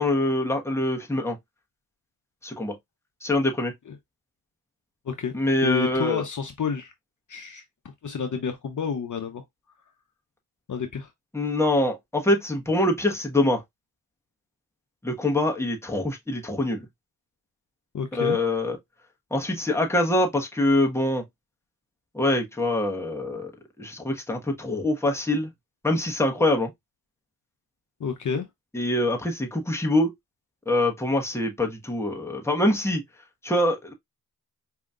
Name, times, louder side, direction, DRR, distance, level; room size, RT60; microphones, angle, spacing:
voice 1, 0.0-1.4 2.4-2.7 3.2-3.7 5.3-6.2 11.3-13.6 15.0-16.8 18.1-18.8 19.3-21.2 22.1-23.5 23.8-25.5 25.8-26.7 28.7-30.1 30.7-33.0 33.4-33.9, left 1 dB, 5° left, 1.3 m, -24 dB
voice 2, 5.0-6.9 7.3-7.6 8.0-9.4 10.7-11.1 17.9-18.4 28.0-28.5, left 6 dB, 55° left, 0.9 m, -29 dB
4.8 x 2.9 x 2.4 m
cardioid pair, 65°, 37 cm